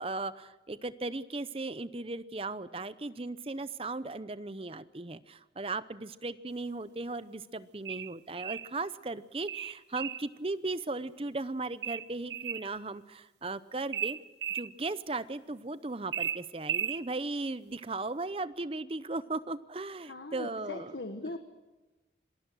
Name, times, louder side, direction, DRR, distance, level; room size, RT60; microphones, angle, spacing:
voice 1, 0.0-14.2 14.5-20.9, right 2 dB, 30° right, 14 dB, 0.7 m, -37 dB
sound 1, 7.8-8.7 9.5-10.3 11.8-12.7 13.9-14.7 16.1-17.0, right 9 dB, 75° right, 0.9 m, -35 dB
voice 2, 20.0-21.4, left 2 dB, 80° left, 7 dB, 1.3 m, -40 dB
26.5 x 19.5 x 6.2 m, 1.2 s
head